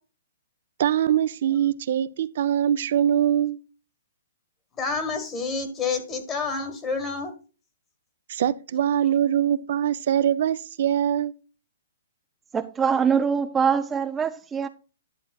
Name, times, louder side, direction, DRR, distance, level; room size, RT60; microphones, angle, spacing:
voice 1, 0.8-3.6 8.3-11.3, right 10 dB, 60° right, 0.6 m, -23 dB
voice 2, 4.8-7.3, left 4 dB, 20° left, 1.5 m, -28 dB
voice 3, 12.5-14.7, right 6 dB, 15° right, 0.4 m, -23 dB
11.0 x 7.2 x 2.4 m
hypercardioid pair, 145°, 0 cm